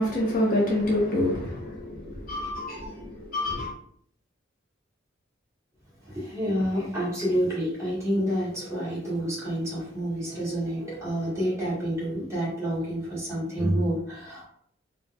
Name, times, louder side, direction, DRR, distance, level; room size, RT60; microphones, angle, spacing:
voice 1, 0.0-3.7, left 1 dB, 45° left, 0.7 m, -27 dB
voice 2, 6.0-14.4, equal, 15° right, 1.4 m, -28 dB
4.1 x 2.3 x 2.2 m
head